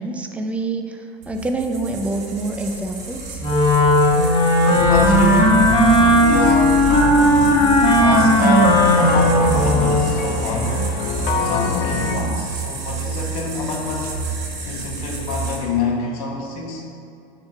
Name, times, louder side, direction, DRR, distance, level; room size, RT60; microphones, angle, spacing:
voice 1, 0.0-3.4, right 2 dB, 5° right, 4 dB, 0.4 m, -26 dB
sound 1, 1.2-15.6, right 4 dB, 40° right, 1.3 m, -30 dB
Wind instrument woodwind instrument, 3.4-10.1, equal, 25° left, 1.4 m, -15 dB
voice 2, 4.7-6.9 7.9-10.8 11.4-16.8, left 3 dB, 75° left, 0 dB, 1.3 m, -26 dB
sound 2, 4.8-12.2, left 5 dB, 55° left, 0.7 m, -25 dB
7.3 x 3.5 x 5.5 m, 2.6 s
supercardioid pair, 135°, 19 cm